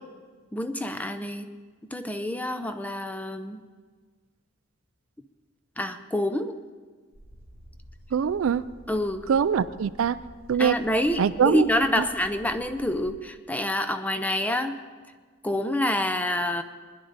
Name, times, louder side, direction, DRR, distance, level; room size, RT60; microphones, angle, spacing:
voice 1, 0.5-1.5 1.9-3.6 5.8-6.6 8.9-9.3 10.6-14.8 15.4-16.6, left 1 dB, 10° left, 9 dB, 0.6 m, -27 dB
sound 1, 7.1-13.1, equal, 75° left, 3.8 m, -50 dB
voice 2, 8.1-8.6 9.3-10.2 10.5-10.8 11.2-11.7 12.0-12.1, right 7 dB, 75° right, 15 dB, 0.4 m, -23 dB
20.5 x 10.5 x 4.0 m, 1.5 s
head